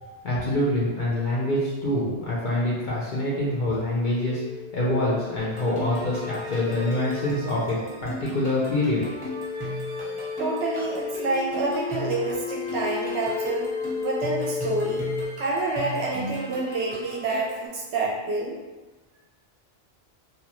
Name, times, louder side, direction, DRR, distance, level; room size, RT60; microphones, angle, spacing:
voice 1, 0.2-4.4 4.7-9.0, left 1 dB, 55° left, -7 dB, 0.6 m, -25 dB
sound 1, 2.1-15.2, left 5 dB, 80° left, 1.0 m, -35 dB
sound 2, 5.4-17.7, equal, 20° right, 0.8 m, -37 dB
voice 2, 10.4-13.7 14.0-15.0 15.4-18.6, right 3 dB, 65° right, -3 dB, 0.7 m, -28 dB
2.8 x 2.3 x 2.9 m, 1.2 s
omnidirectional pair, 1.3 m